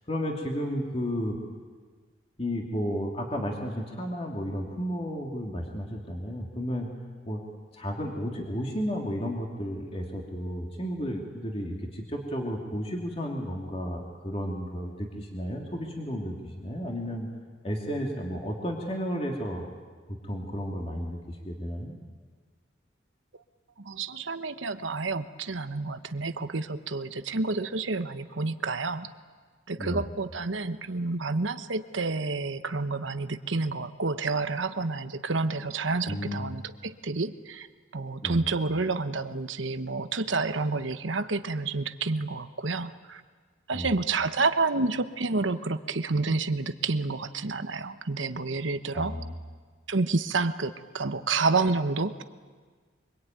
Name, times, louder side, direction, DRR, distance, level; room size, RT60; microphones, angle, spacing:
voice 1, 0.1-1.4 2.4-6.9 7.3-7.4 7.7-17.3 17.6-19.7 20.2-21.9 29.8-30.0 36.1-36.5 38.2-38.4 43.7-43.9 48.9-49.3, equal, 30° left, 0 dB, 2.8 m, -33 dB
voice 2, 23.8-29.1 29.7-37.7 37.9-43.2 43.7-49.2 49.9-52.2, right 3 dB, 85° right, 10 dB, 1.1 m, -29 dB
24.5 x 24.5 x 9.3 m, 1.5 s
head